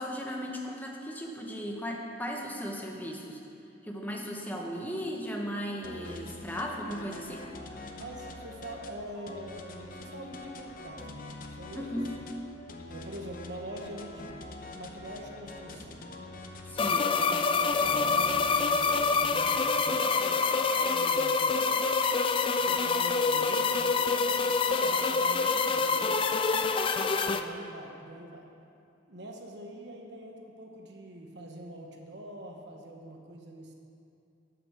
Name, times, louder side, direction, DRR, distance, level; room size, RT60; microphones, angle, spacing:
voice 1, 0.0-3.4 3.8-7.5 11.7-12.2 16.7-17.1, equal, 10° left, 0 dB, 1.0 m, -36 dB
sound 1, 5.8-19.5, left 2 dB, 45° left, 0.8 m, -45 dB
voice 2, 8.0-11.9 12.9-14.3 14.7-16.0 16.8-21.9 22.6-26.5 27.3-28.4 29.1-33.7, right 1 dB, 65° right, 2 dB, 1.2 m, -44 dB
sound 2, 16.8-27.4, left 4 dB, 30° left, 0.3 m, -26 dB
8.5 x 8.1 x 6.5 m, 2.6 s
head